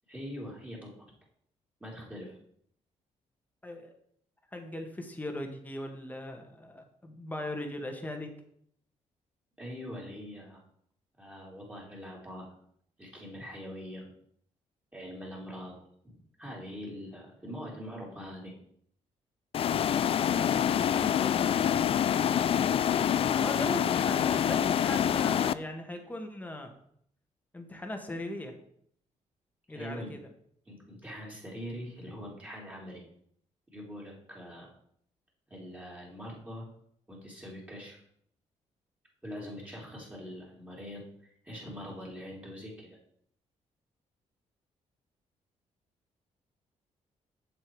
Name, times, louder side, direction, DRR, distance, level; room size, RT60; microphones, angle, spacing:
voice 1, 0.1-0.9 1.8-2.4 9.6-10.6 11.2-12.5 13.0-14.1 14.9-15.8 16.0-18.5 29.7-30.1 30.7-33.0 33.7-34.7 35.5-36.7 37.1-38.1 39.2-43.0, equal, 10° right, -3 dB, 3.5 m, -43 dB
voice 2, 3.6-3.9 4.5-8.3 20.2-21.6 23.3-26.7 27.5-28.6 29.7-30.2, left 1 dB, 15° left, 4 dB, 1.6 m, -39 dB
sound 1, 19.5-25.5, left 9 dB, 50° left, 0.4 m, -26 dB
7.6 x 7.0 x 4.8 m, 0.66 s
cardioid pair, 100°, 13 cm